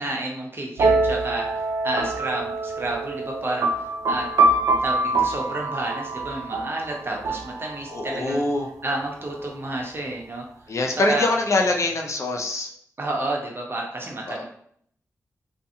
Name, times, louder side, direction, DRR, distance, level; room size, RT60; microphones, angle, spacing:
voice 1, 0.0-8.4 8.8-10.4 10.9-11.2 13.0-14.4, right 2 dB, 40° right, -1 dB, 0.8 m, -30 dB
sound 1, 0.8-8.3, right 3 dB, 75° right, 0.4 m, -25 dB
voice 2, 7.9-8.7 10.7-12.7 14.3-14.4, left 2 dB, 55° left, 1 dB, 0.5 m, -24 dB
2.5 x 2.4 x 2.7 m, 0.66 s
cardioid pair, 50°, 6 cm